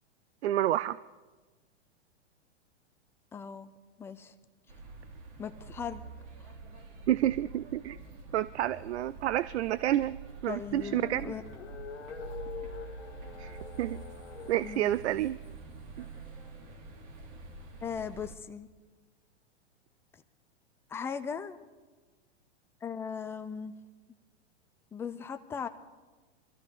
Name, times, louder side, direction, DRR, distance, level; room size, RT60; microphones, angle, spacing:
voice 1, 0.4-1.0 7.1-8.0 8.3-11.3 13.4-14.0 14.5-15.4 16.0-16.1, right 13 dB, 75° right, 18 dB, 0.5 m, -29 dB
voice 2, 3.3-3.7 4.0-4.3 5.4-6.0 10.5-11.4 14.6-14.9 17.8-18.7 20.9-21.6 22.8-23.7 24.9-25.7, left 6 dB, 10° left, 9 dB, 0.4 m, -38 dB
sound 1, 4.7-18.4, right 4 dB, 40° right, 2.7 m, -46 dB
sound 2, 10.6-14.9, left 8 dB, 80° left, 1.8 m, -45 dB
23.5 x 14.0 x 3.5 m, 1.3 s
hypercardioid pair, 125°, 33 cm